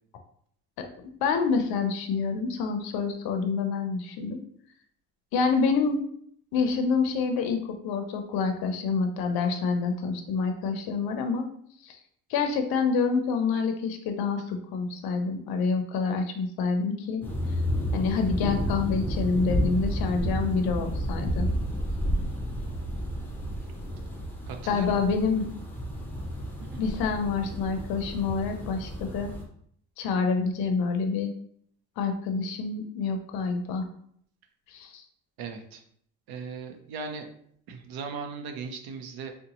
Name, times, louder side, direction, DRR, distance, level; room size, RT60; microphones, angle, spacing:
voice 1, 0.8-4.4 5.3-6.1 6.5-11.5 11.8-12.0 12.3-17.2 17.9-21.5 24.7-25.5 26.8-29.3 30.0-31.3 32.0-33.8 34.7-35.0, left 5 dB, 80° left, 6 dB, 0.5 m, -27 dB
sound 1, 17.2-29.4, equal, 5° left, 0.5 m, -31 dB
voice 2, 24.5-25.0 26.6-26.8 35.4-35.8 36.3-37.3 37.7-39.3, right 5 dB, 80° right, 5 dB, 0.6 m, -38 dB
3.8 x 2.1 x 2.9 m, 0.65 s
cardioid pair, 130°, 36 cm